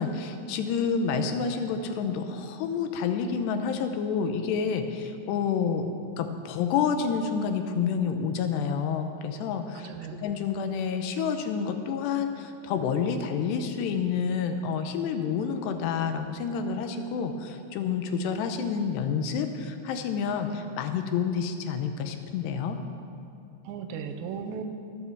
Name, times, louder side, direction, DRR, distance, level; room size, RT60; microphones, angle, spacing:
voice 1, 0.0-5.9 6.2-9.9 10.2-22.8, left 6 dB, 80° left, 7 dB, 2.8 m, -29 dB
voice 2, 9.7-10.3 23.6-24.6, right 7 dB, 90° right, 7 dB, 3.1 m, -36 dB
13.5 x 9.1 x 7.2 m, 2.6 s
omnidirectional pair, 5.0 m